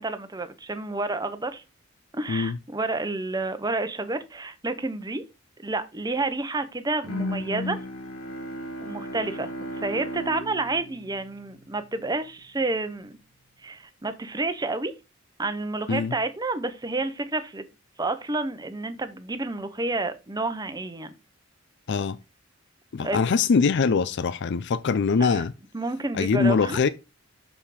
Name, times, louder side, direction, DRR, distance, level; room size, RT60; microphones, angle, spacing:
voice 1, 0.0-1.6 2.1-5.2 5.6-7.8 8.8-13.2 13.6-14.9 15.4-17.7 18.0-21.1 23.0-23.2 25.2-25.4 25.7-26.8, right 2 dB, 20° right, 0.9 m, -30 dB
Bowed string instrument, 7.0-12.1, left 1 dB, 85° left, 1.4 m, -35 dB
voice 2, 22.9-25.5 26.1-26.9, left 5 dB, 60° left, 0.5 m, -23 dB
6.4 x 5.7 x 4.9 m
head